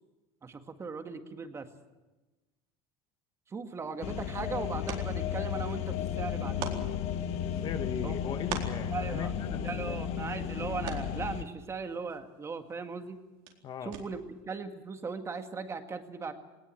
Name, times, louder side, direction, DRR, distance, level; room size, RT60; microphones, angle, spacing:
voice 1, 0.4-1.7 3.5-6.7 8.0-8.1 8.9-9.3 9.6-13.2 13.8-16.3, right 4 dB, 20° right, 7 dB, 2.0 m, -38 dB
sound 1, 3.7-14.4, right 8 dB, 70° right, 4.1 m, -46 dB
sound 2, 4.0-11.4, left 9 dB, 55° left, 1.5 m, -34 dB
voice 2, 7.6-10.0 13.6-13.9, left 7 dB, 35° left, 8 dB, 1.4 m, -39 dB
19.5 x 18.5 x 8.9 m, 1.1 s
supercardioid pair, 130°, 13 cm